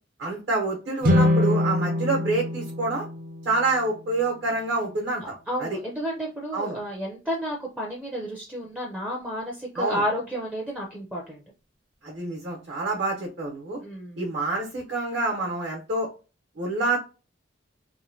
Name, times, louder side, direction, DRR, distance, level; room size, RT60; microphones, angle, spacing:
voice 1, 0.2-3.0 3.4-5.8 6.5-6.8 9.8-10.0 12.0-13.8 14.2-16.1 16.6-17.0, right 2 dB, 65° right, -1 dB, 1.0 m, -27 dB
sound 1, 1.0-4.3, left 1 dB, 50° right, 0.6 m, -24 dB
voice 2, 5.5-11.4 13.8-14.2, equal, 5° right, -1 dB, 0.5 m, -31 dB
3.0 x 2.2 x 2.6 m, 0.32 s
head